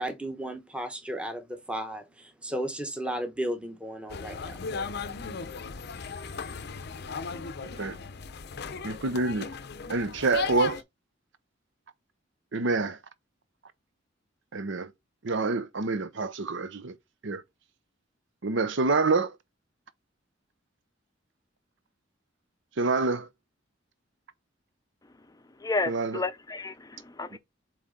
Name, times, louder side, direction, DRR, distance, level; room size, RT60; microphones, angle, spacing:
voice 1, 0.0-4.6, right 1 dB, 5° right, 1.0 m, -34 dB
sound 1, 4.1-10.8, left 5 dB, 55° left, 0.6 m, -37 dB
voice 2, 8.8-9.5 9.9-10.8 12.5-13.0 14.5-14.9 15.2-16.9 17.2-17.4 18.4-19.4 22.8-23.3 25.9-26.2 27.3-27.4, right 3 dB, 65° right, 0.7 m, -27 dB
voice 3, 25.6-27.4, left 3 dB, 20° left, 0.6 m, -31 dB
7.7 x 3.2 x 3.8 m
head